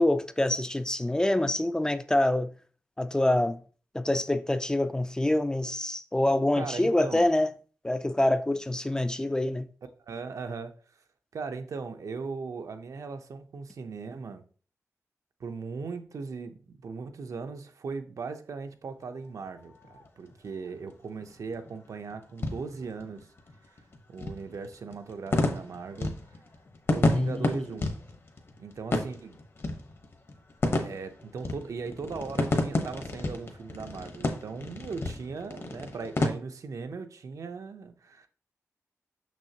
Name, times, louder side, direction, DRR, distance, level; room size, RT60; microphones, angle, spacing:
voice 1, 0.0-2.5 3.0-3.6 3.9-7.5 7.8-9.7 27.1-27.6, left 1 dB, 15° left, 0.3 m, -26 dB
voice 2, 6.5-7.3 10.1-10.7 11.3-14.4 15.4-23.3 24.1-26.2 26.9-27.9 28.6-29.4 30.8-38.3, right 4 dB, 80° right, 0.6 m, -38 dB
sound 1, 19.0-36.3, left 2 dB, 50° left, 1.0 m, -32 dB
6.3 x 6.2 x 2.8 m
wide cardioid pair, 160°, 6 cm